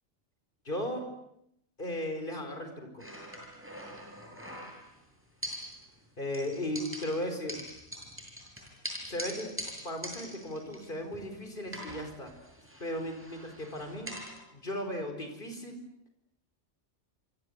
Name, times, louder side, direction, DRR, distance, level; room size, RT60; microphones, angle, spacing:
voice 1, 0.6-1.1 1.8-3.1 6.2-7.6 9.1-12.3 12.8-14.2 14.5-15.8, left 1 dB, 40° left, 6 dB, 4.9 m, -36 dB
sound 1, 3.0-5.0 5.4-6.1 6.3-11.3 11.7-14.4, equal, 10° right, 7.9 m, -43 dB
27.5 x 25.5 x 8.1 m, 0.77 s
omnidirectional pair, 1.3 m